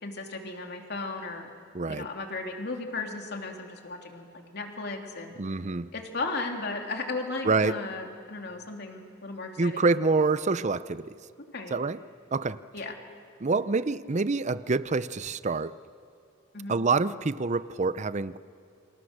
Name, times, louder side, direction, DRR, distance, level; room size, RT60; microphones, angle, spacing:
voice 1, 0.0-1.5 1.9-5.3 5.9-9.9 11.4-11.8 12.7-12.9 16.5-16.7, left 3 dB, 60° left, 2 dB, 2.9 m, -35 dB
voice 2, 1.7-2.1 5.4-5.9 7.4-7.8 9.6-11.1 11.7-12.0 12.3-12.6 13.4-15.7 16.7-18.4, right 3 dB, 40° right, 15 dB, 0.6 m, -26 dB
29.0 x 26.5 x 6.6 m, 2.6 s
head